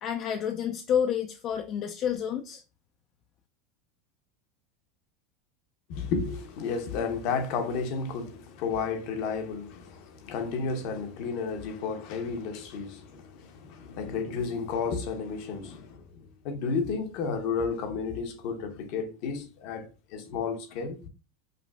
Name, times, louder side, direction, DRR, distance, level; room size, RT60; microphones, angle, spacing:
voice 1, 0.0-2.6, left 8 dB, 45° left, 0.4 m, -29 dB
voice 2, 5.9-21.1, left 5 dB, 60° left, 0.8 m, -32 dB
5.1 x 2.5 x 2.3 m
supercardioid pair, 115°, 0 cm